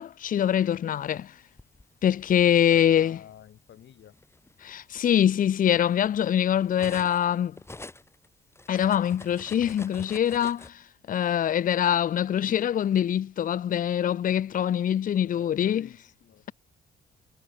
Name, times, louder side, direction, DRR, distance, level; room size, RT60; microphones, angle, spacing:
voice 1, 0.0-1.3 2.0-3.2 4.6-7.6 8.7-10.8 11.1-15.9, left 10 dB, 45° left, 0.5 m, -24 dB
Cutlery silverware, 1.2-2.5 3.4-3.6 4.0-7.3 7.5-10.7, left 2 dB, 15° left, 1.7 m, -46 dB
voice 2, 2.5-4.2 15.2-16.4, left 10 dB, 65° left, 4.4 m, -49 dB
cardioid pair, 90°, 20 cm